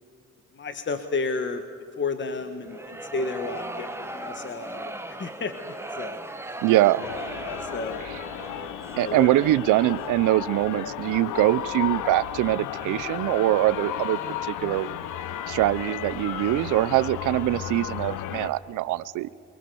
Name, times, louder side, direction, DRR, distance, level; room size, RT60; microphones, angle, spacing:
voice 1, 0.5-1.6 2.0-5.5 5.9-6.2 6.5-6.6 7.4-8.0 8.9-9.3, left 4 dB, 40° left, 8 dB, 1.4 m, -32 dB
sound 1, 2.6-9.8, right 1 dB, 10° right, 1.6 m, -38 dB
voice 2, 6.6-7.0 8.1-8.2 9.0-14.2 14.5-14.9 15.5-19.3, right 15 dB, 85° right, 17 dB, 0.6 m, -23 dB
sound 2, 7.0-18.5, left 11 dB, 90° left, 1.1 m, -34 dB
28.0 x 21.0 x 7.0 m, 2.4 s
cardioid pair, 90°, 30 cm